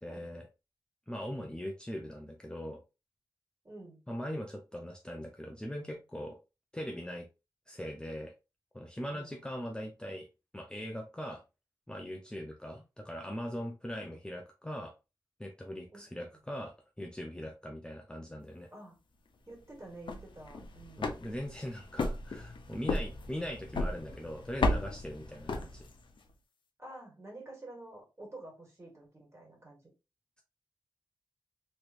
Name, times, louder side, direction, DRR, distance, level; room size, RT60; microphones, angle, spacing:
voice 1, 0.0-0.5 1.1-2.8 4.1-6.4 6.7-7.3 7.7-8.3 8.7-10.3 10.5-11.4 11.9-14.9 15.4-18.7 21.0-25.9, equal, 10° left, 2 dB, 0.5 m, -40 dB
voice 2, 3.6-4.0 9.1-9.4 15.9-16.0 18.7-19.0 19.5-21.2 26.8-29.9, right 2 dB, 35° right, -1 dB, 1.7 m, -49 dB
sound 1, 19.9-26.2, left 2 dB, 75° left, 0.6 m, -35 dB
3.2 x 3.1 x 2.4 m, 0.27 s
wide cardioid pair, 90°, 8 cm